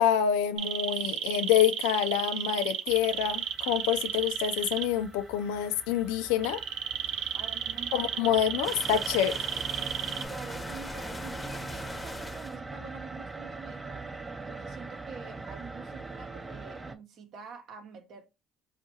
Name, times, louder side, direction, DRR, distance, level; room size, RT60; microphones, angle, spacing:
voice 1, 0.0-6.6 7.9-9.5, left 10 dB, 85° left, 0.3 m, -27 dB
sound 1, 0.6-4.8 6.4-10.2, right 10 dB, 80° right, 0.4 m, -32 dB
sound 2, 2.9-16.9, right 3 dB, 20° right, 0.4 m, -42 dB
voice 2, 7.3-8.2 10.1-14.1 14.3-18.3, right 5 dB, 65° right, 0.8 m, -46 dB
sound 3, 8.6-12.6, left 2 dB, 20° left, 0.7 m, -41 dB
4.3 x 2.4 x 2.7 m
supercardioid pair, 75°, 0 cm